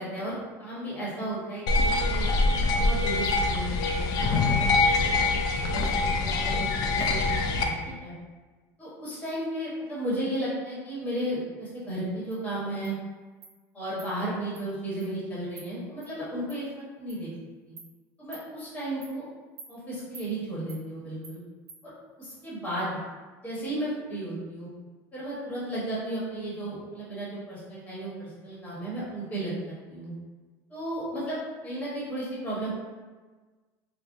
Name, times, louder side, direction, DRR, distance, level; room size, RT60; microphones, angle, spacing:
voice 1, 0.0-4.7 5.0-7.2 7.6-8.1 8.8-12.9 13.7-16.7 16.9-17.3 17.7-17.8 18.2-19.2 19.7-21.4 21.8-21.9 22.2-22.9 23.4-24.7 25.1-30.1 30.7-32.7, right 1 dB, 20° left, -8 dB, 1.2 m, -34 dB
sound 1, 1.7-7.6, left 3 dB, 50° left, 0.4 m, -24 dB
Insect, 12.3-12.4 12.8-12.9 13.4-13.5 14.0-14.1 14.5-14.6 15.0-15.1 15.6-15.7 16.0-16.1 16.5-16.6 17.1-17.2 17.8-17.9 18.3-18.5 19.0-19.1 19.6-19.7 20.1-20.3 20.7-20.8 21.2-21.4 21.7-21.8, right 4 dB, 55° right, 0.6 m, -47 dB
3.4 x 2.2 x 2.6 m, 1.3 s
supercardioid pair, 135°, 8 cm